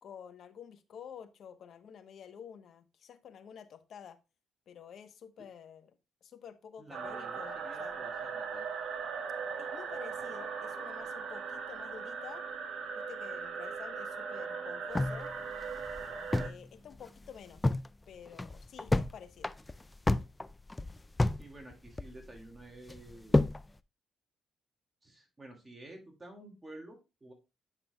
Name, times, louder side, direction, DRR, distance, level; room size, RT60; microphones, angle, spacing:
voice 1, 0.0-4.2 4.7-5.9 6.2-8.0 9.6-12.4 13.0-15.3 16.4-17.7 18.1-19.5, left 8 dB, 65° left, 0.9 m, -50 dB
voice 2, 6.8-8.7 16.0-16.2 21.4-23.4 25.0-27.3, right 2 dB, 20° right, 2.1 m, -51 dB
sound 1, 6.9-16.5, right 5 dB, 70° right, 1.3 m, -39 dB
sound 2, 15.0-16.7 16.9-17.0 17.4-17.9 18.3-19.1 19.4-21.5 21.7-22.4 22.9-23.6, left 2 dB, 15° left, 0.3 m, -29 dB
9.9 x 5.8 x 2.2 m
cardioid pair, 90°, 0 cm